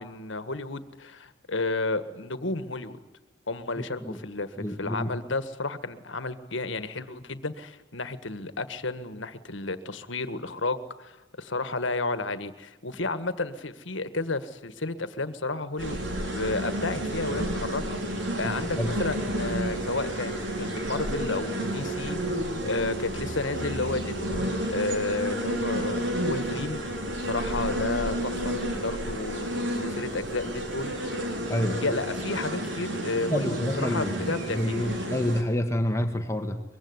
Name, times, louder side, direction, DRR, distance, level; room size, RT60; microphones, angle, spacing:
voice 1, 0.0-3.0 3.5-26.8 27.2-31.2 31.8-34.9, left 3 dB, 75° left, 12 dB, 1.7 m, -32 dB
voice 2, 4.6-5.1 18.4-18.9 31.5-31.8 33.3-36.6, left 1 dB, 15° left, 5 dB, 1.5 m, -28 dB
sound 1, 15.8-35.4, equal, 70° right, 4.7 m, -31 dB
23.5 x 22.5 x 9.7 m, 1.1 s
head